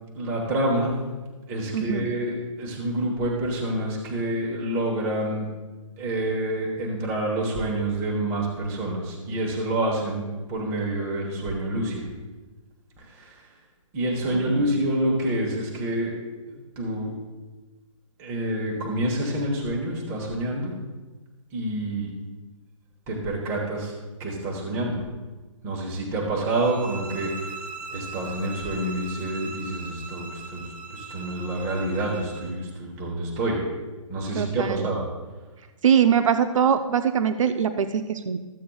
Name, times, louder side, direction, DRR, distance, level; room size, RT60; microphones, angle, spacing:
voice 1, 0.1-0.9 1.5-5.5 6.0-12.0 13.1-13.4 13.9-16.1 16.8-17.1 18.2-20.7 21.5-22.1 23.1-23.9 24.2-25.0 25.6-27.5 27.9-33.6 34.1-35.0, right 1 dB, 15° right, -2 dB, 1.2 m, -27 dB
voice 2, 1.7-2.1 14.2-14.6 34.3-34.9 35.8-38.4, right 7 dB, 65° right, 9 dB, 0.7 m, -22 dB
sound 1, 26.5-32.6, right 3 dB, 35° right, 1.0 m, -40 dB
14.5 x 8.4 x 2.3 m, 1.2 s
hypercardioid pair, 165°, 18 cm